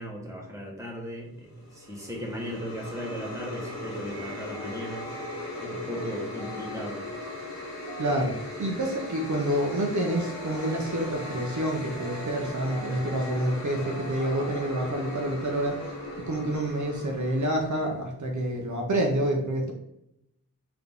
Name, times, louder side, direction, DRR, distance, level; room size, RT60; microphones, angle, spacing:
voice 1, 0.0-5.2 5.6-7.0, equal, 10° right, -2 dB, 1.2 m, -37 dB
sound 1, 1.5-18.0, left 2 dB, 55° left, 1.0 m, -39 dB
sound 2, 4.1-15.3, right 3 dB, 10° left, 1.0 m, -46 dB
voice 2, 8.0-15.9 16.3-19.7, right 1 dB, 60° right, 1 dB, 0.7 m, -28 dB
Wind instrument woodwind instrument, 10.0-14.9, left 3 dB, 85° left, 0.5 m, -47 dB
3.8 x 2.8 x 3.6 m, 0.82 s
wide cardioid pair, 60°, 34 cm